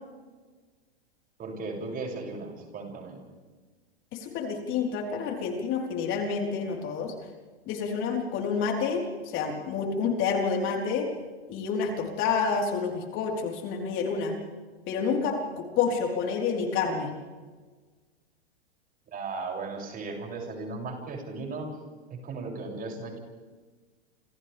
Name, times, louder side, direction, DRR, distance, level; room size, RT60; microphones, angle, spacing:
voice 1, 1.4-3.2 19.1-21.7 22.1-23.2, right 3 dB, 25° right, 0 dB, 7.4 m, -36 dB
voice 2, 4.1-7.1 7.7-11.1 11.5-14.4 14.9-17.1, left 5 dB, 40° left, 1 dB, 4.5 m, -28 dB
29.5 x 28.0 x 3.6 m, 1.4 s
hypercardioid pair, 105°, 32 cm